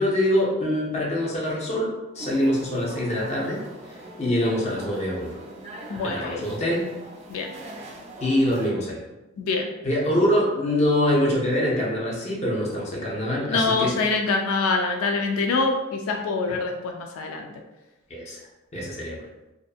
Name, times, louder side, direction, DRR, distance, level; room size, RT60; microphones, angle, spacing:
voice 1, 0.0-5.4 6.0-6.9 8.2-9.0 9.8-13.9 16.5-16.6 18.1-18.4 18.7-19.3, left 1 dB, 30° left, -4 dB, 0.6 m, -24 dB
sound 1, 2.2-8.7, right 1 dB, 30° right, 0.3 m, -42 dB
voice 2, 5.9-6.4 7.3-7.5 9.4-9.6 13.5-17.5, left 3 dB, 85° left, 2 dB, 0.3 m, -25 dB
2.5 x 2.5 x 2.3 m, 1.0 s
head